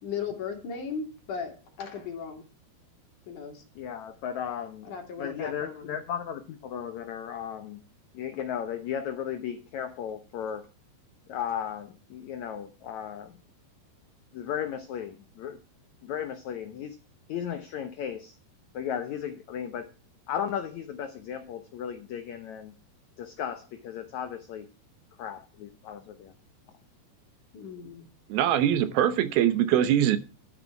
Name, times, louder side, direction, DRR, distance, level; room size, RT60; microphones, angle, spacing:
voice 1, 0.0-2.4 3.3-3.6 4.8-6.0 27.5-28.1, left 6 dB, 55° left, 3.8 m, -37 dB
voice 2, 3.8-4.9 5.2-7.8 8.1-10.6 11.3-13.3 14.3-15.6 16.0-17.0 17.3-18.4 18.7-19.9 20.3-22.7 23.2-24.7 25.2-26.3, left 9 dB, 75° left, 1.7 m, -35 dB
voice 3, 28.3-30.2, right 11 dB, 75° right, 2.6 m, -22 dB
13.0 x 9.1 x 4.6 m
omnidirectional pair, 4.6 m